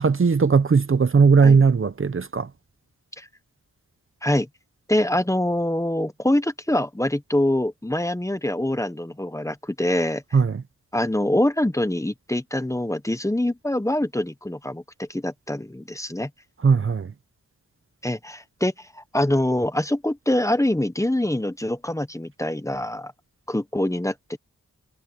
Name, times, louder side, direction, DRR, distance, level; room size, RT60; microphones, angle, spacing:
voice 1, 0.0-2.5 10.3-10.6 16.6-17.1, right 5 dB, 45° right, 0.8 m, -18 dB
voice 2, 4.9-10.2 10.9-16.3 18.0-23.1 23.5-24.4, left 1 dB, 10° left, 1.1 m, -24 dB
wide cardioid pair, 100°, 31 cm